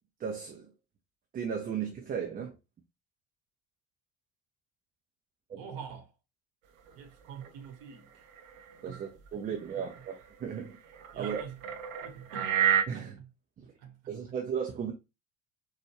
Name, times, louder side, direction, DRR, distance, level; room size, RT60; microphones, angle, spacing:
voice 1, 0.2-0.7 1.3-2.5 5.5-5.6 8.8-10.7 11.1-11.4 12.9-13.2 13.6-13.7 14.1-14.9, right 7 dB, 20° right, 0.5 m, -35 dB
voice 2, 5.5-6.1 6.9-8.2 8.8-9.0 9.7-9.8 10.5-10.7 11.1-11.6 12.0-12.6 12.9-13.3 13.8-14.4, right 7 dB, 50° right, 1.0 m, -46 dB
sound 1, 6.9-7.0 7.4-7.5 8.4-9.3 9.9-10.1 10.9-12.8, right 10 dB, 65° right, 0.6 m, -29 dB
4.2 x 2.3 x 3.1 m
figure-of-eight pair, 65°, 45 cm